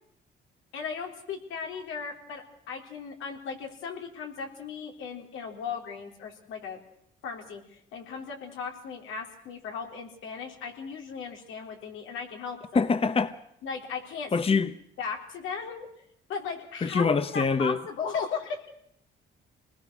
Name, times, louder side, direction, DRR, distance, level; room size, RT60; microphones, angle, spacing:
voice 1, 0.7-6.8 7.2-12.8 13.6-14.6 15.0-15.9 16.3-18.7, left 5 dB, 90° left, 3.9 m, -37 dB
voice 2, 12.7-13.3 14.3-14.7 16.8-17.8, left 4 dB, 30° left, 1.0 m, -24 dB
26.5 x 20.0 x 6.4 m
cardioid pair, 90°, 20 cm